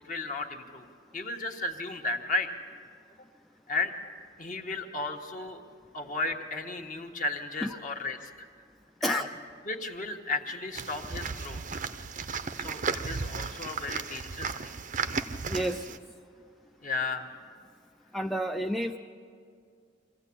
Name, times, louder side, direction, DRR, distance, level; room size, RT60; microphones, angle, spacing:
voice 1, 0.0-0.8 1.1-2.5 3.7-3.9 4.4-5.6 5.9-8.5 9.0-9.3 9.7-11.8 12.5-14.7 16.8-17.3, left 3 dB, 45° left, 3 dB, 1.4 m, -34 dB
sound 1, 10.8-16.0, right 5 dB, 40° right, 0.7 m, -34 dB
voice 2, 15.5-16.0 18.1-19.0, right 1 dB, ahead, 4 dB, 0.4 m, -30 dB
23.5 x 15.0 x 8.6 m, 2.3 s
head